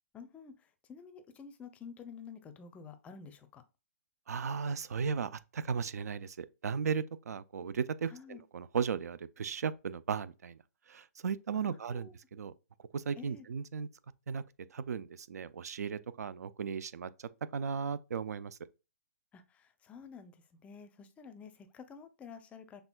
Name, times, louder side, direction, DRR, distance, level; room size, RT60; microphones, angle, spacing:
voice 1, 0.1-3.6 8.1-8.4 11.6-12.2 13.2-13.5 19.3-22.8, left 6 dB, 15° left, 0.5 m, -50 dB
voice 2, 4.3-10.6 10.9-12.5 12.9-13.9 14.3-14.4 14.7-17.1 17.5-18.6, right 6 dB, 75° right, 0.4 m, -36 dB
6.0 x 3.3 x 2.2 m
hypercardioid pair, 135°, 9 cm